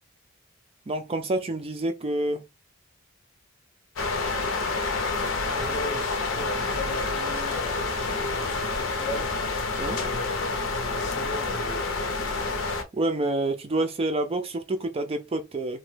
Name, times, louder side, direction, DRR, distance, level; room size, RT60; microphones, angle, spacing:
voice 1, 0.9-2.5 9.8-10.0 12.9-15.8, right 2 dB, 30° right, 0.4 m, -28 dB
sound 1, 4.0-12.8, left 3 dB, 75° left, 0.7 m, -28 dB
voice 2, 5.4-7.9 8.2-9.3 9.9-11.9, left 1 dB, 35° left, 0.6 m, -37 dB
2.9 x 2.1 x 3.2 m
head